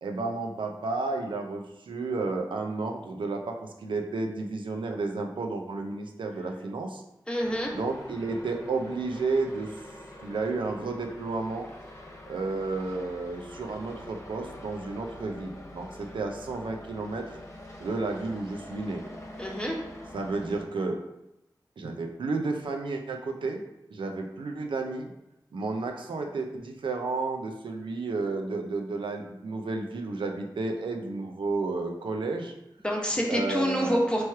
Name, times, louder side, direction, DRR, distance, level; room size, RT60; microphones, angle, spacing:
voice 1, 0.0-7.0 7.7-9.7 10.2-11.7 12.3-17.4 17.8-19.0 20.1-21.0 21.8-23.6 23.9-25.1 25.5-32.5 33.3-34.0, right 3 dB, 90° right, 3 dB, 0.5 m, -32 dB
voice 2, 7.3-7.7 19.4-19.8 32.8-34.2, equal, 10° left, -1 dB, 1.1 m, -27 dB
sound 1, 7.4-20.7, left 1 dB, 35° left, 1.1 m, -45 dB
3.0 x 3.0 x 4.6 m, 0.86 s
cardioid pair, 45°, 8 cm